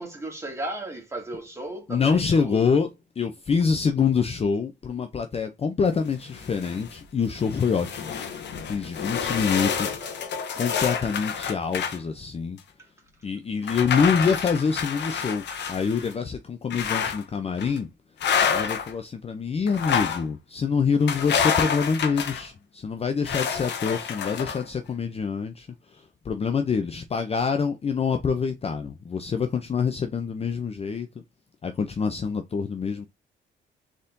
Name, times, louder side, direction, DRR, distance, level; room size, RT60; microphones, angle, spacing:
voice 1, 0.0-2.6 9.2-10.3 15.5-15.7, right 1 dB, 15° right, 2.0 m, -37 dB
voice 2, 1.9-2.9 3.2-8.1 8.6-10.0 10.5-12.6 13.2-17.9 18.5-25.7 26.3-31.1 31.6-33.0, left 5 dB, 30° left, 0.5 m, -26 dB
sound 1, 6.1-6.9 7.3-12.0 12.6-12.7 13.6-16.1 16.7-17.2 17.6-17.8 18.2-18.9 19.7-20.2 21.1-22.5 23.2-24.6, left 7 dB, 60° left, 0.8 m, -28 dB
3.9 x 3.6 x 2.6 m
cardioid pair, 90°, 20 cm